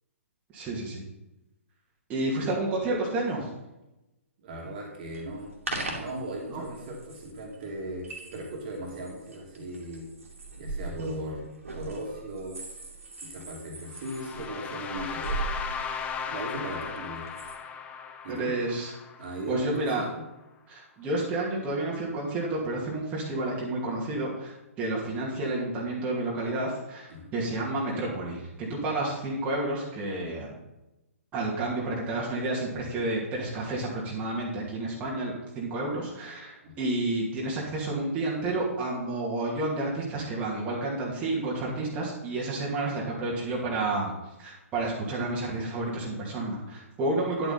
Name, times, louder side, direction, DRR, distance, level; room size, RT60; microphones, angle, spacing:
voice 1, 0.5-1.0 2.1-3.5 6.5-6.6 11.0-11.1 18.3-18.9 19.5-20.0 20.7-30.5 31.3-44.1 44.4-47.5, right 2 dB, 20° right, -4 dB, 2.4 m, -30 dB
voice 2, 4.4-5.5 5.9-10.1 10.6-11.4 11.7-12.6 13.2-15.5 16.3-17.3 18.2-18.5 19.2-20.2 27.1-27.3 36.6-36.8, right 1 dB, 40° right, -1 dB, 2.5 m, -37 dB
sound 1, 5.1-17.6, right 3 dB, 70° right, 2.6 m, -40 dB
sound 2, 13.9-19.9, left 6 dB, 15° left, 0.8 m, -37 dB
10.5 x 8.0 x 4.1 m, 0.95 s
figure-of-eight pair, 125°, 8 cm